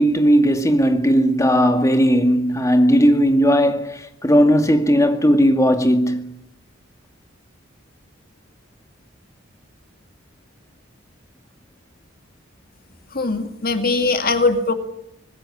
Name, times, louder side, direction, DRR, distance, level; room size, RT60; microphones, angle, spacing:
voice 1, 0.0-6.3, equal, 15° left, 2.2 m, -16 dB
voice 2, 13.1-14.7, left 3 dB, 50° left, 2.3 m, -20 dB
25.5 x 20.0 x 10.0 m
head